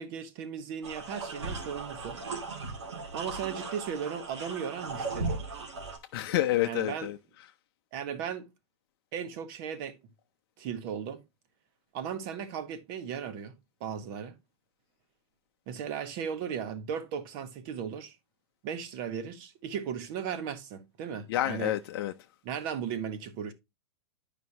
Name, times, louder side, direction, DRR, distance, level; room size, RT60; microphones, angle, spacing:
voice 1, 0.0-2.2 3.1-5.4 6.6-7.1 7.9-8.5 9.1-10.0 10.6-11.2 11.9-13.5 13.8-14.4 15.7-18.2 18.6-21.7 22.4-23.5, right 7 dB, 50° right, 1.2 m, -36 dB
sound 1, 0.8-6.0, right 3 dB, 85° right, 2.1 m, -37 dB
voice 2, 6.1-7.2 21.3-22.1, left 14 dB, 55° left, 0.6 m, -28 dB
9.3 x 5.1 x 2.8 m
hypercardioid pair, 115°, 14 cm